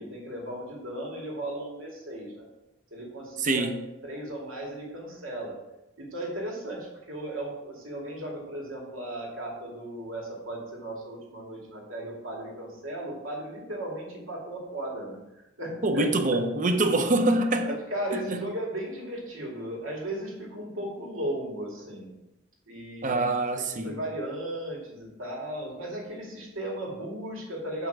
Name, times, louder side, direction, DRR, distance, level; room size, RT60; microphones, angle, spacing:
voice 1, 0.0-2.5 2.9-3.7 4.0-5.6 6.0-16.4 17.6-22.1 22.7-23.3 23.6-27.9, right 1 dB, 90° right, 2.4 m, -36 dB
voice 2, 3.4-3.7 15.8-17.8 18.3-18.4 23.0-24.0, right 2 dB, 40° right, 0.7 m, -25 dB
7.4 x 5.6 x 4.7 m
head